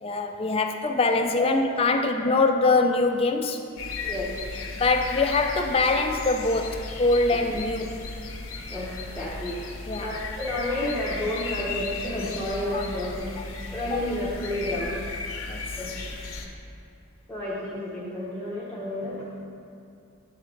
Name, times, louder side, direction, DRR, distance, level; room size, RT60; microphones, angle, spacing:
voice 1, 0.0-3.6 4.7-8.0 9.9-10.1 12.7-12.8 13.3-13.4 13.9-14.0 15.5-15.6, left 3 dB, 25° left, 5 dB, 0.4 m, -23 dB
sound 1, 3.8-16.5, left 3 dB, 80° left, 0.8 m, -35 dB
voice 2, 4.0-4.3 8.7-9.6 10.0-13.3 13.7-15.0 15.8-16.0 17.3-19.3, left 1 dB, 5° left, -9 dB, 0.8 m, -31 dB
9.9 x 3.8 x 4.4 m, 2.5 s
head